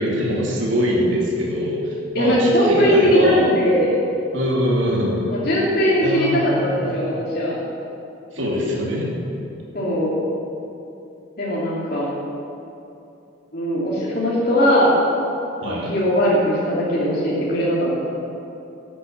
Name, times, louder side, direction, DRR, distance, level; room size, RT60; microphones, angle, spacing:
voice 1, 0.0-3.5 4.3-5.3 6.0-7.0 8.3-9.1 15.6-15.9, equal, 70° right, -3 dB, 2.5 m, -23 dB
voice 2, 2.1-3.9 5.3-7.6 8.4-8.7 9.7-10.1 11.4-12.1 13.5-15.0 15.6-18.0, equal, 50° left, -6 dB, 2.8 m, -19 dB
13.0 x 8.6 x 7.2 m, 2.8 s
head